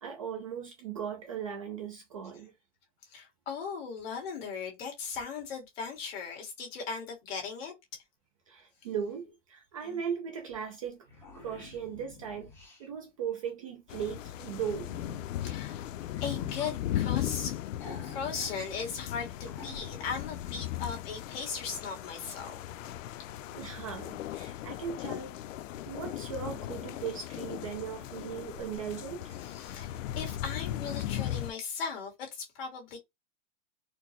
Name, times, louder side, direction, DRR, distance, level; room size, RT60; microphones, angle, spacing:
voice 1, 0.0-2.5 8.5-11.0 11.4-12.5 12.8-14.9 23.5-25.4 25.9-29.3, right 7 dB, 30° right, 0.4 m, -38 dB
voice 2, 3.1-8.0 9.8-10.0 15.4-15.8 16.2-17.6 18.0-22.6 24.4-24.6 29.4-33.0, left 5 dB, 50° left, 1.6 m, -38 dB
sound 1, 10.5-10.6 10.8-12.9 14.4-15.3 16.1-16.8 17.8-18.5 18.9-19.0 19.5-20.4, left 2 dB, 5° left, 0.7 m, -48 dB
sound 2, 13.9-31.5, left 12 dB, 85° left, 0.5 m, -37 dB
4.3 x 2.0 x 2.9 m
supercardioid pair, 170°, 37 cm